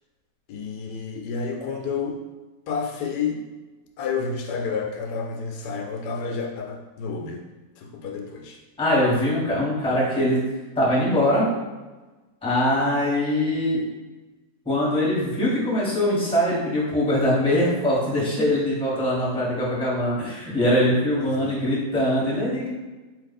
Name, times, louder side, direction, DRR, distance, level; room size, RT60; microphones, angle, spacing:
voice 1, 0.5-2.2 2.7-3.5 4.0-7.4 7.8-8.6 21.2-21.6, left 5 dB, 80° left, 1 dB, 1.1 m, -30 dB
voice 2, 8.8-10.4 10.7-11.4 12.4-13.8 14.6-22.7, left 1 dB, 5° left, -7 dB, 1.2 m, -22 dB
4.5 x 2.5 x 4.0 m, 1.2 s
omnidirectional pair, 1.8 m